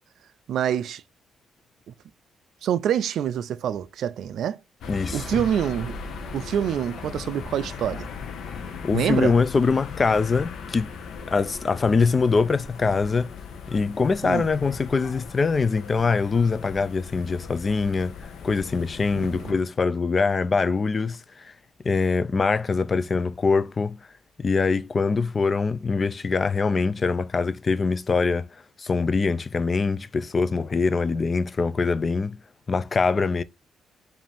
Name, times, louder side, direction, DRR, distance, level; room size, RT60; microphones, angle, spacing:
voice 1, 0.5-1.0 2.6-4.6 5.1-6.0 6.3-8.1 8.9-9.3 14.2-14.5 19.1-19.6, right 9 dB, 70° right, 0.3 m, -26 dB
sound 1, 4.8-19.5, left 5 dB, 70° left, 0.7 m, -38 dB
voice 2, 4.9-5.4 8.8-10.9 11.3-13.3 13.7-18.2 18.4-21.5 21.8-24.0 24.4-28.5 28.8-32.4 32.7-33.4, left 4 dB, 35° left, 0.3 m, -23 dB
5.1 x 2.6 x 3.4 m
cardioid pair, 90°, 0 cm